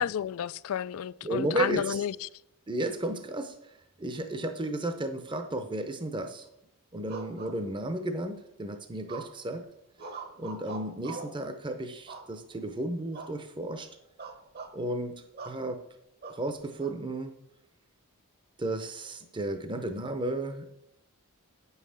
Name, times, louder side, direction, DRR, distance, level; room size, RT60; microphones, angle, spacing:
voice 1, 0.0-2.3, left 9 dB, 70° left, 0.3 m, -31 dB
voice 2, 1.2-2.0 2.7-3.5 4.0-6.5 6.9-9.6 10.4-13.9 14.7-15.8 16.2-17.3 18.6-20.7, right 1 dB, 20° right, 0.7 m, -33 dB
sound 1, 7.1-8.1 9.1-9.5 10.0-11.4 12.1-12.7 13.1-13.4 13.7-13.8 14.2-14.8 15.4-15.6 16.2-16.9, right 4 dB, 45° right, 1.1 m, -43 dB
9.0 x 5.6 x 6.4 m
head